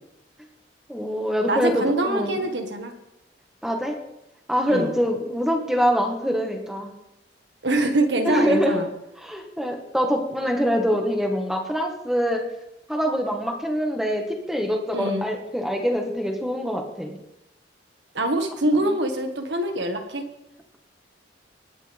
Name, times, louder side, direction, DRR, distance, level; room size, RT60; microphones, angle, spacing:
voice 1, 0.9-2.4 3.6-3.9 4.5-6.9 8.2-8.8 9.2-12.4 12.9-17.2 18.8-18.9, equal, ahead, 2 dB, 1.7 m, -24 dB
voice 2, 1.5-2.9 4.7-4.9 7.6-8.9 14.9-15.2 18.1-20.2, right 1 dB, 70° right, 5 dB, 1.7 m, -24 dB
19.0 x 10.5 x 3.6 m, 0.88 s
head